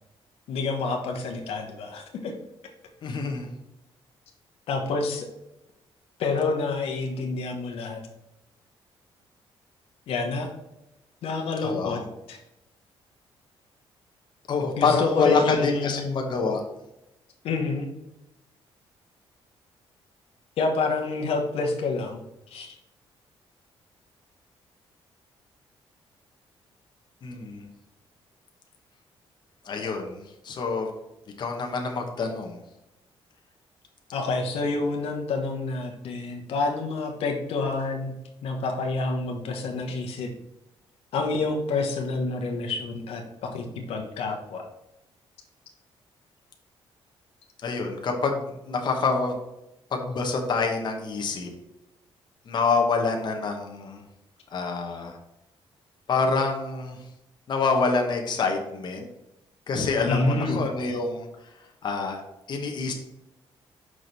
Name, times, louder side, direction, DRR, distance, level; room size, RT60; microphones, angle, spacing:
voice 1, 0.5-2.3 4.7-5.3 6.2-8.0 10.1-10.5 11.2-12.0 12.3-12.4 14.8-16.2 17.4-17.9 20.6-22.2 22.5-22.7 34.1-38.1 38.4-40.3 41.1-44.6 60.1-60.6, left 3 dB, 80° left, 2 dB, 1.1 m, -28 dB
voice 2, 3.0-3.5 11.6-12.0 14.5-16.6 27.2-27.7 29.6-30.9 31.4-32.6 47.6-49.4 49.9-51.5 52.5-54.0 54.5-55.2 56.1-57.0 57.5-59.0 59.7-61.3 61.8-62.2 62.5-62.9, left 4 dB, 50° left, 2 dB, 1.1 m, -26 dB
6.1 x 4.9 x 4.1 m, 0.92 s
cardioid pair, 125°, 10 cm